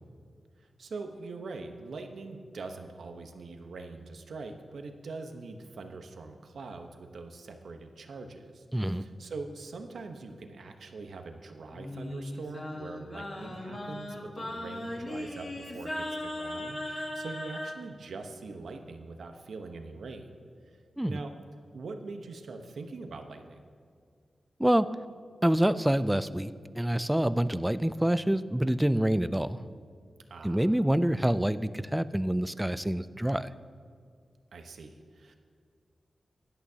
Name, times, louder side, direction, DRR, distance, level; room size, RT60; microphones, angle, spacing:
voice 1, 0.8-16.1 16.4-20.3 21.1-21.3 21.7-23.6 30.3-30.7 34.5-35.3, right 3 dB, 80° right, 5 dB, 1.0 m, -43 dB
voice 2, 8.7-9.1 21.0-21.2 24.6-25.0 25.4-29.6 30.4-33.5, right 1 dB, 5° right, 14 dB, 0.3 m, -27 dB
Singing, 11.7-17.8, left 1 dB, 35° left, 1.5 m, -38 dB
17.0 x 11.5 x 2.8 m, 2.2 s
wide cardioid pair, 120°, 0 cm